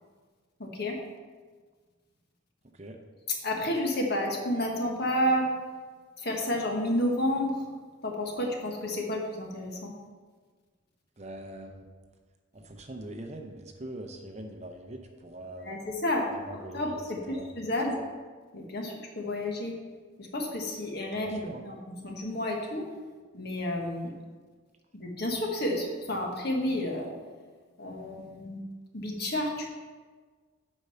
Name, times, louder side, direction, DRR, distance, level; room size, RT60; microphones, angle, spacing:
voice 1, 0.6-1.0 3.4-5.5 6.2-7.6 8.0-9.9 15.6-16.2 16.7-18.0 18.5-19.7 20.2-21.8 22.0-22.9 23.3-24.1 24.9-27.1 27.8-28.6 28.9-29.7, left 1 dB, 50° left, 0 dB, 1.4 m, -30 dB
voice 2, 11.2-11.9 12.5-15.8 16.3-17.0 17.3-17.5 17.9-18.0 21.3-21.7, right 1 dB, 30° right, 4 dB, 0.7 m, -42 dB
8.2 x 5.4 x 5.6 m, 1.5 s
head